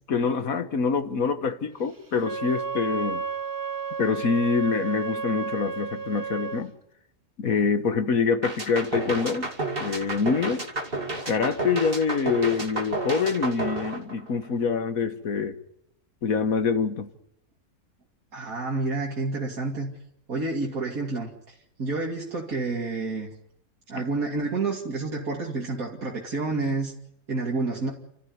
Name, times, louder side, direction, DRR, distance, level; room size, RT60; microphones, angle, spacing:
voice 1, 0.1-3.2 4.0-6.7 7.4-9.5 9.8-10.6 11.3-15.6 16.2-17.1, left 5 dB, 75° left, 1.8 m, -25 dB
Wind instrument woodwind instrument, 2.1-6.6, right 5 dB, 15° right, 1.0 m, -32 dB
sound 1, 8.4-14.6, right 2 dB, 40° right, 2.8 m, -31 dB
voice 2, 18.3-19.9 20.3-23.3 23.9-26.9 27.3-27.9, right 3 dB, 75° right, 2.9 m, -29 dB
29.5 x 14.0 x 9.5 m
omnidirectional pair, 1.5 m